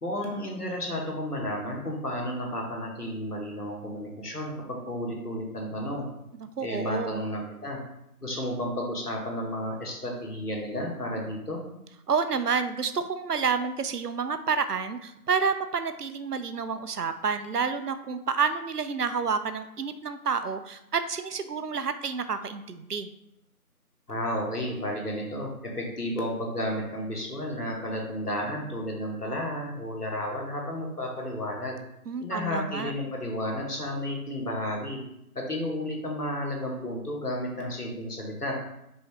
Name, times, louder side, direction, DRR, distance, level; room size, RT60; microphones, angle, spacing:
voice 1, 0.0-6.1 6.6-7.8 8.2-11.6 24.1-31.8 32.2-35.0 35.3-38.6, left 1 dB, 80° left, -1 dB, 1.5 m, -32 dB
voice 2, 6.4-7.3 12.1-23.1 32.1-32.9, right 5 dB, 80° right, 11 dB, 0.6 m, -29 dB
5.3 x 2.8 x 3.3 m, 0.81 s
figure-of-eight pair, 180°, 46 cm